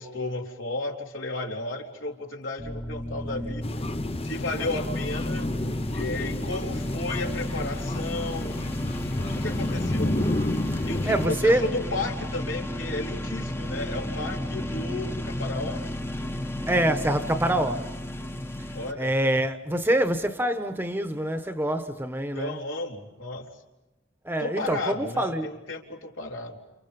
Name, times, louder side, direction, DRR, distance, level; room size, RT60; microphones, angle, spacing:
voice 1, 0.0-3.6 4.2-5.5 5.9-8.6 9.1-10.2 10.8-15.8 18.7-19.1 22.3-23.5 24.4-26.6, left 2 dB, 75° left, 3.8 m, -33 dB
sound 1, 2.6-18.9, left 1 dB, 10° left, 1.1 m, -33 dB
sound 2, 3.6-11.3, left 1 dB, 30° left, 0.9 m, -31 dB
voice 2, 10.8-11.7 16.7-18.0 19.0-22.6 24.2-25.5, right 1 dB, 10° right, 1.2 m, -25 dB
29.5 x 29.0 x 5.4 m
head